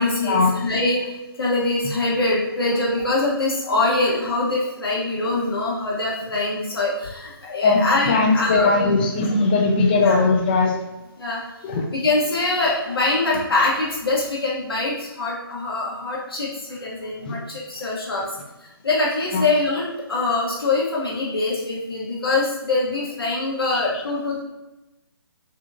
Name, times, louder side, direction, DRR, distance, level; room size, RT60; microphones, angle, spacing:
voice 1, 0.0-8.7 10.0-10.2 11.2-11.4 11.9-18.3 18.8-24.4, left 2 dB, 75° left, -5 dB, 0.9 m, -23 dB
voice 2, 7.6-10.7 11.6-11.8 17.2-17.4 19.3-19.4 23.7-23.8, left 3 dB, 25° left, 3 dB, 0.3 m, -19 dB
3.5 x 2.6 x 2.4 m, 0.98 s
figure-of-eight pair, 140°, 13 cm